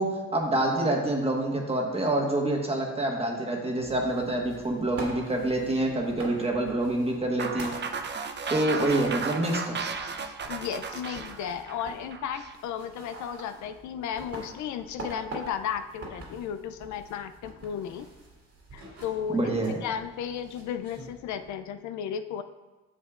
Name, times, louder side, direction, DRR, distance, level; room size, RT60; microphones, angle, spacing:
voice 1, 0.0-7.7 8.5-9.8 19.3-19.8, right 1 dB, 20° right, 0 dB, 1.3 m, -27 dB
sound 1, 3.8-21.5, right 1 dB, 55° right, 2.2 m, -45 dB
sound 2, 7.4-12.5, right 5 dB, 35° right, 0.6 m, -34 dB
voice 2, 10.5-18.1 18.7-19.5 19.8-22.4, left 8 dB, 75° left, 9 dB, 0.4 m, -34 dB
9.9 x 6.4 x 2.4 m, 1.2 s
cardioid pair, 90°, 30 cm